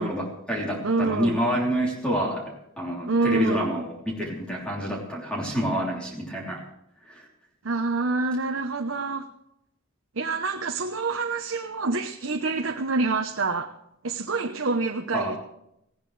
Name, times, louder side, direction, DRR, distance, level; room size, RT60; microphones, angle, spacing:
voice 1, 0.0-6.6 7.1-7.3 15.1-15.4, equal, 5° left, -4 dB, 3.4 m, -28 dB
voice 2, 0.8-1.4 3.1-3.7 7.6-9.3 10.2-13.7 14.0-15.4, right 3 dB, 65° right, 4 dB, 1.0 m, -26 dB
19.0 x 16.5 x 3.4 m, 0.79 s
head